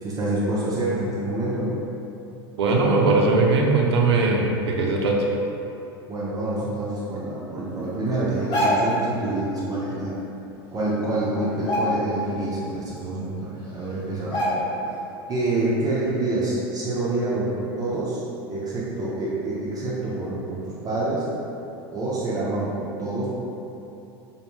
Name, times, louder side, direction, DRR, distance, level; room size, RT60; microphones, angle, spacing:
voice 1, 0.0-1.8 6.1-10.1 10.7-14.5 15.3-18.2 18.5-21.2 21.9-23.3, right 2 dB, 30° right, -7 dB, 0.5 m, -27 dB
voice 2, 2.6-5.3, right 3 dB, 85° right, 0 dB, 0.4 m, -20 dB
sound 1, 8.3-9.1 10.5-10.6 10.9-11.2 11.5-12.4 12.8-12.9 13.6-13.7 14.3-14.9 15.3-15.5, equal, 35° left, 0.8 m, -25 dB
2.5 x 2.1 x 3.0 m, 2.9 s
hypercardioid pair, 90°, 13 cm